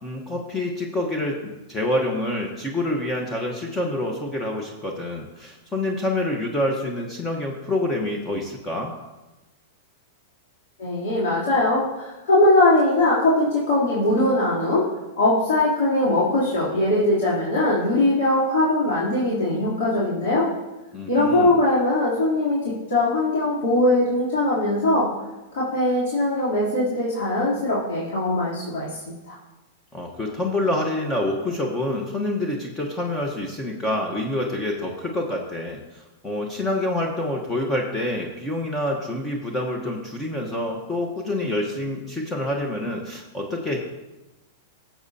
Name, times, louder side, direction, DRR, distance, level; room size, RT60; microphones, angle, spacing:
voice 1, 0.0-8.9 20.9-21.6 29.9-43.8, left 1 dB, 15° left, 1 dB, 1.1 m, -27 dB
voice 2, 10.8-14.8 15.2-20.5 21.1-25.1 25.5-29.4, left 1 dB, 70° left, -9 dB, 3.2 m, -21 dB
13.5 x 7.4 x 2.8 m, 1.1 s
hypercardioid pair, 125°, 0 cm